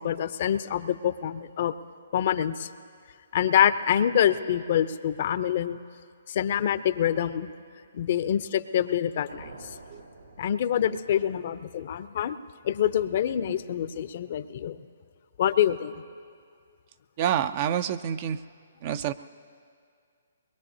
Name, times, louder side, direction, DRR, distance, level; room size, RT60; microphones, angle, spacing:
voice 1, 0.0-1.7 2.1-2.7 3.3-5.8 6.3-7.5 7.9-9.5 10.4-12.4 12.6-14.8 15.4-16.0, left 10 dB, 50° left, 13 dB, 0.6 m, -26 dB
sound 1, 9.3-11.5, right 3 dB, 90° right, 1.8 m, -48 dB
voice 2, 17.2-18.4 18.8-19.1, right 9 dB, 40° right, 12 dB, 0.4 m, -27 dB
22.5 x 21.0 x 2.7 m, 2.2 s
hypercardioid pair, 140°, 0 cm